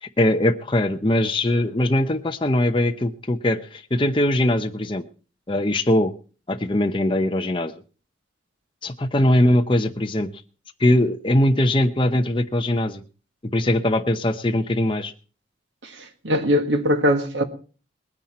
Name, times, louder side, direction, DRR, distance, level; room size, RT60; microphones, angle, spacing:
voice 1, 0.0-5.0 5.5-6.1 6.5-7.7 8.8-10.3 10.8-13.0 13.5-15.1, left 1 dB, 25° left, 0.8 m, -21 dB
voice 2, 15.8-17.4, equal, 80° right, 1.8 m, -21 dB
20.0 x 9.8 x 4.3 m
head